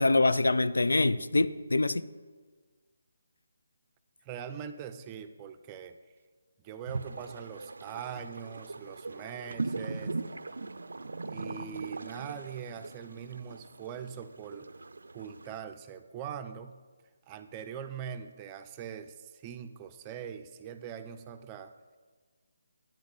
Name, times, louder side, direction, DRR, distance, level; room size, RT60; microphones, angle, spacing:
voice 1, 0.0-2.1, left 2 dB, 85° left, 0.4 m, -25 dB
voice 2, 4.2-6.0 6.6-10.2 11.3-14.7 15.1-16.8 17.3-21.7, right 8 dB, 20° right, 0.5 m, -42 dB
sound 1, 6.9-15.6, right 3 dB, 80° right, 0.4 m, -40 dB
10.0 x 8.5 x 4.0 m
figure-of-eight pair, 155°, 0 cm